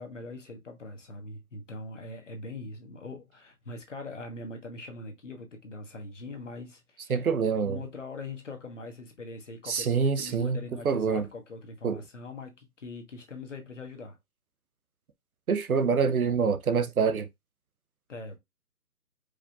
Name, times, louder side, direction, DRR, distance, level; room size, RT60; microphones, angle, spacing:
voice 1, 0.0-7.2 7.6-14.2 18.1-18.4, left 3 dB, 50° left, 1.1 m, -42 dB
voice 2, 7.1-7.8 9.7-11.3 11.8-12.0 15.5-17.3, right 5 dB, 65° right, 0.6 m, -26 dB
4.8 x 2.7 x 2.3 m
hypercardioid pair, 170°, 47 cm